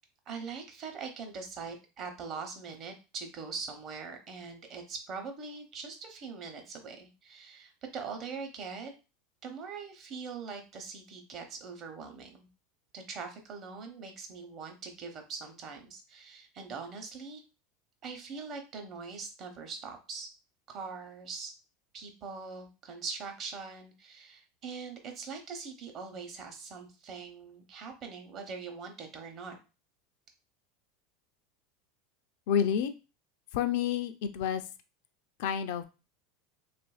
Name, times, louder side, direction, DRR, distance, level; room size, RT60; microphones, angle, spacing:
voice 1, 0.3-8.9 9.4-12.5 12.9-17.4 18.0-20.3 20.7-21.5 21.9-29.6, right 5 dB, 45° right, 4 dB, 0.8 m, -42 dB
voice 2, 32.5-32.9 33.5-34.6 35.4-35.8, left 8 dB, 70° left, 9 dB, 0.4 m, -29 dB
2.8 x 2.5 x 2.4 m, 0.30 s
hypercardioid pair, 100°, 0 cm